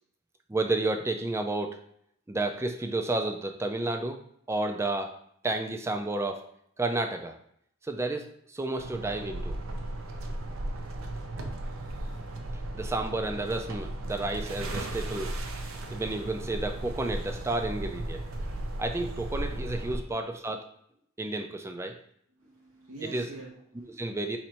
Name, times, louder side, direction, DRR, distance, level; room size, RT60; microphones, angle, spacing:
voice 1, 0.5-1.8 2.3-4.2 4.5-5.1 5.4-6.4 6.8-7.4 7.8-9.6 12.7-15.3 15.9-18.2 18.8-20.7 21.2-22.0 23.0-23.3 23.9-24.4, right 2 dB, 15° right, 5 dB, 0.3 m, -31 dB
sound 1, 8.8-20.0, right 1 dB, 75° right, 0.6 m, -36 dB
voice 2, 22.3-24.2, right 3 dB, 90° right, -5 dB, 1.3 m, -46 dB
4.2 x 2.5 x 4.3 m, 0.70 s
head